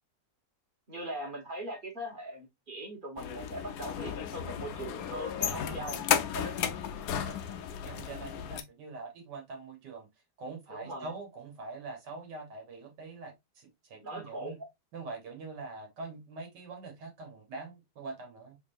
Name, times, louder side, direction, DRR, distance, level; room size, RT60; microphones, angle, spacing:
voice 1, 0.9-6.7 10.7-11.1 14.0-14.5, right 1 dB, 30° right, 1.2 m, -40 dB
sound 1, 3.2-8.6, left 9 dB, 70° left, 0.9 m, -34 dB
voice 2, 5.7-6.0 7.1-7.3 7.8-10.1 10.4-14.6 14.9-18.6, right 3 dB, 75° right, 1.7 m, -44 dB
3.7 x 3.5 x 2.5 m
omnidirectional pair, 1.9 m